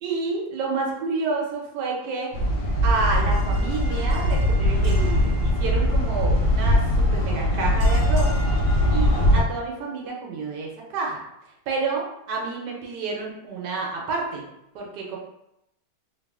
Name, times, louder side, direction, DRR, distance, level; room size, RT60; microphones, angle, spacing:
voice 1, 0.0-2.3 2.8-8.3 8.9-11.2 11.7-14.4 14.7-15.2, right 4 dB, 80° right, -1 dB, 1.2 m, -29 dB
sound 1, 2.3-9.4, equal, 80° left, 1.2 m, -21 dB
3.1 x 2.3 x 2.3 m, 0.83 s
omnidirectional pair, 1.8 m